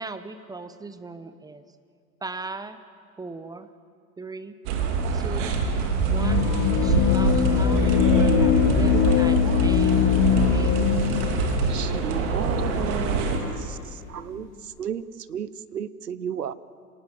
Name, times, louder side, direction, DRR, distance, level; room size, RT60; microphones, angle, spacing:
voice 1, 0.0-1.6 2.2-2.8 3.2-3.7 4.2-4.6 5.1-5.5 6.0-10.7, right 3 dB, 10° right, 11 dB, 0.7 m, -38 dB
sound 1, 4.7-13.4, right 5 dB, 50° right, 2.9 m, -25 dB
sound 2, 6.1-13.2, left 9 dB, 35° left, 1.3 m, -22 dB
voice 2, 10.9-12.0 12.2-12.3 12.6-13.7, right 4 dB, 35° right, 0 dB, 4.1 m, -42 dB
voice 3, 11.7-13.2 13.5-13.8 14.1-14.5 14.8-16.5, right 8 dB, 80° right, 17 dB, 0.9 m, -33 dB
27.0 x 18.5 x 7.7 m, 2.3 s
figure-of-eight pair, 90°, 47 cm